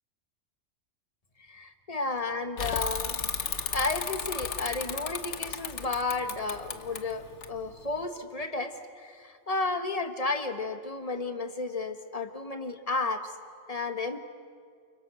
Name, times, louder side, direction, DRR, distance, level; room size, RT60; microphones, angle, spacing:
voice 1, 1.4-3.2 3.7-13.3 13.7-14.2, left 3 dB, 30° left, 8 dB, 1.6 m, -32 dB
Bicycle / Mechanisms, 2.6-8.0, left 6 dB, 80° left, 1.5 m, -34 dB
29.5 x 29.0 x 6.4 m, 2.3 s
omnidirectional pair, 1.2 m